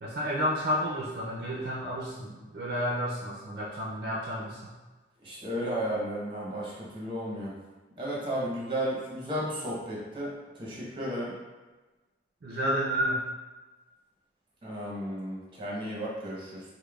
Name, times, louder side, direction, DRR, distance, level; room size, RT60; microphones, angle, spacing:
voice 1, 0.0-4.7 12.4-13.2, equal, 55° right, -4 dB, 0.4 m, -31 dB
voice 2, 5.2-7.6 8.0-11.3 14.6-16.6, equal, 25° right, -5 dB, 0.8 m, -34 dB
5.0 x 2.1 x 2.3 m, 1.2 s
head